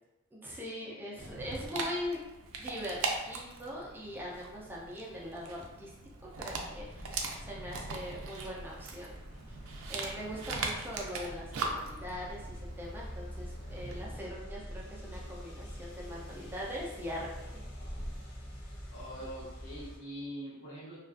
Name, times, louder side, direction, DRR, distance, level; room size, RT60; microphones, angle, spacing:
voice 1, 0.3-2.2 2.6-3.0 3.3-5.9 6.2-9.1 9.9-17.3 19.2-19.3, equal, 10° right, -5 dB, 0.4 m, -41 dB
Dog, 1.2-14.1, right 3 dB, 80° right, 0.4 m, -40 dB
sound 1, 6.3-20.0, equal, 50° left, 0.7 m, -45 dB
voice 2, 18.9-21.0, equal, 80° left, -8 dB, 1.1 m, -43 dB
2.4 x 2.3 x 2.4 m, 0.98 s
head